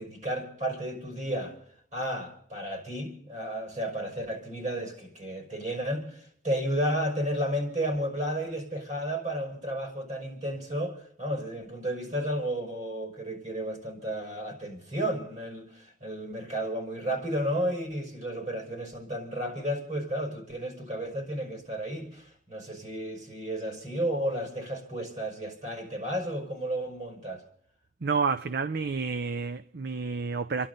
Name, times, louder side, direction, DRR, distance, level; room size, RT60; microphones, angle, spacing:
voice 1, 0.0-1.6 1.9-27.4, right 1 dB, 45° right, 5.6 m, -32 dB
voice 2, 28.0-30.7, right 4 dB, 60° right, 0.6 m, -29 dB
29.0 x 11.5 x 3.9 m
head